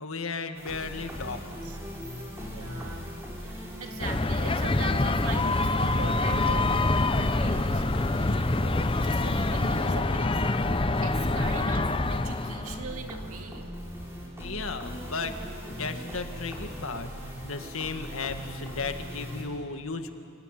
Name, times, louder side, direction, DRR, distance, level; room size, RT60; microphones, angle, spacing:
voice 1, 0.0-1.4 14.4-15.3 15.7-20.1, left 4 dB, 70° left, 7 dB, 1.7 m, -35 dB
sound 1, 0.5-19.4, equal, 10° right, 5.0 m, -39 dB
voice 2, 2.4-3.0 3.4-10.4 11.0-13.7, right 4 dB, 80° right, 4 dB, 2.2 m, -41 dB
sound 2, 4.0-12.9, left 2 dB, 25° left, 0.7 m, -26 dB
28.5 x 19.0 x 8.9 m, 2.3 s
head